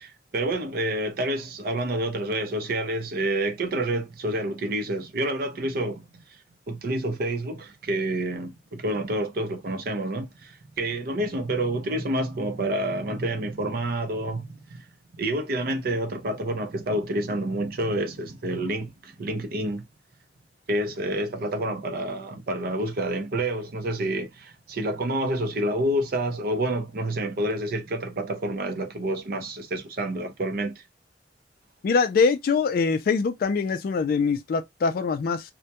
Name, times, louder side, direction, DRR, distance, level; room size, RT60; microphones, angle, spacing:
voice 1, 0.0-6.2 6.7-14.9 15.2-19.8 20.7-30.7, right 1 dB, 55° right, 0.5 m, -28 dB
voice 2, 31.8-35.4, left 5 dB, 55° left, 0.3 m, -23 dB
2.2 x 2.1 x 2.8 m
head